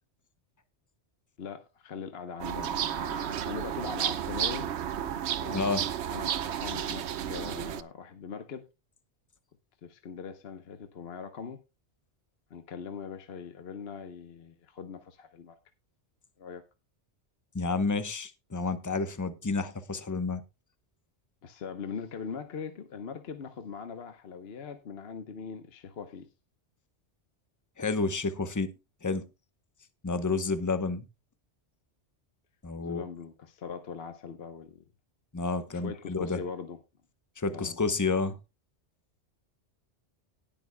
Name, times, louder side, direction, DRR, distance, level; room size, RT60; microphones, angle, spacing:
voice 1, 1.4-4.7 5.4-5.6 6.1-8.7 9.8-11.6 12.5-15.6 16.4-16.6 21.4-26.3 32.8-34.8 35.7-36.8 37.4-37.8, left 6 dB, 60° left, 1.2 m, -41 dB
sound 1, 2.4-7.8, right 9 dB, 70° right, 0.9 m, -32 dB
voice 2, 5.5-5.9 17.5-20.4 27.8-28.7 29.0-29.2 30.0-31.1 32.6-33.0 35.3-36.4 37.4-38.4, left 3 dB, 20° left, 0.8 m, -30 dB
18.5 x 8.7 x 2.2 m
omnidirectional pair, 1.2 m